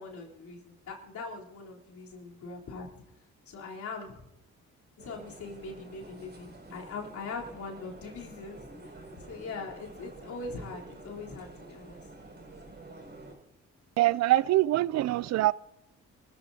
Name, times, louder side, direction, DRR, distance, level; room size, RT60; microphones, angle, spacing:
voice 1, 0.0-2.9 3.5-4.3 5.0-8.6 9.3-12.0, left 4 dB, 70° left, 3.8 m, -41 dB
sound 1, 5.0-13.3, right 2 dB, 35° right, 5.5 m, -49 dB
voice 2, 14.0-15.5, right 15 dB, 60° right, 0.4 m, -24 dB
27.5 x 14.5 x 2.8 m
cardioid pair, 90°, 30 cm